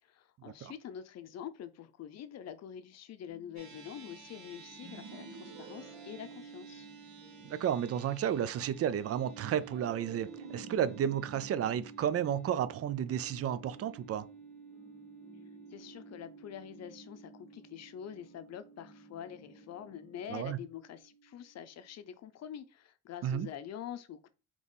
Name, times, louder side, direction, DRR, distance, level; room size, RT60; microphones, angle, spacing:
voice 1, 0.0-6.9 15.7-24.3, left 9 dB, 60° left, 0.6 m, -46 dB
sound 1, 3.3-20.3, left 2 dB, 25° left, 1.2 m, -60 dB
sound 2, 3.6-22.1, right 6 dB, 85° right, 1.3 m, -53 dB
sound 3, 4.8-7.2 9.6-12.9, right 4 dB, 70° right, 1.4 m, -51 dB
voice 2, 7.4-14.2 20.3-20.6 23.2-23.5, right 9 dB, 50° right, 0.4 m, -32 dB
3.5 x 3.0 x 4.0 m
cardioid pair, 90°, 30 cm